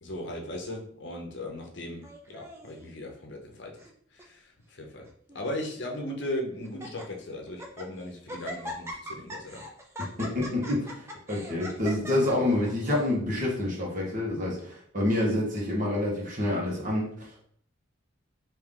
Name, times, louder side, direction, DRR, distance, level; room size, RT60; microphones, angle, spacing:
voice 1, 0.0-3.8 4.1-5.1 5.3-9.6, left 1 dB, 60° left, 1 dB, 0.7 m, -37 dB
Laughter, 2.0-2.8 3.5-3.9 4.2-4.3 5.0-5.7 6.2-6.3 6.6-7.1 7.5-7.9 8.3-13.1, equal, 15° right, 0.4 m, -41 dB
voice 2, 10.0-17.5, left 1 dB, 40° right, -4 dB, 1.2 m, -28 dB
3.3 x 2.7 x 3.7 m, 0.62 s
head